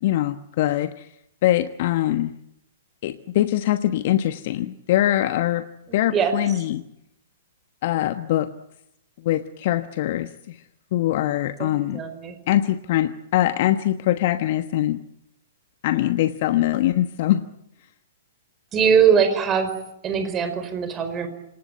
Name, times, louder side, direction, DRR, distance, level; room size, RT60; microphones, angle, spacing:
voice 1, 0.0-1.1 1.4-2.3 3.0-5.6 5.9-6.8 7.8-8.5 9.2-10.6 10.9-12.0 12.5-15.0 15.8-17.4, left 13 dB, 45° left, 10 dB, 1.1 m, -22 dB
voice 2, 11.6-12.3 18.7-19.7 20.0-21.3, right 7 dB, 20° right, 9 dB, 4.8 m, -21 dB
27.0 x 19.5 x 9.2 m, 0.79 s
figure-of-eight pair, 115°, 0 cm